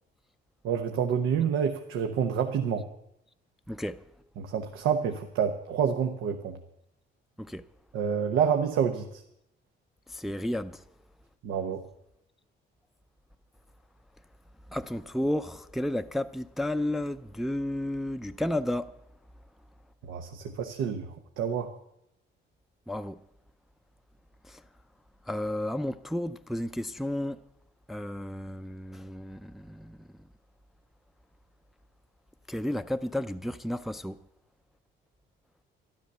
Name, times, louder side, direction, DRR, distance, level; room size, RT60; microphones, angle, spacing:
voice 1, 0.6-2.8 4.4-6.6 7.9-9.2 11.4-11.8 20.1-21.7, right 7 dB, 85° right, 1.0 m, -28 dB
voice 2, 3.7-4.0 7.4-7.6 10.1-10.8 14.7-18.9 22.9-23.2 24.5-24.6 25.3-27.4 27.9-30.0 32.5-34.2, left 1 dB, ahead, 0.5 m, -32 dB
12.5 x 11.5 x 6.7 m
cardioid pair, 90°, 20 cm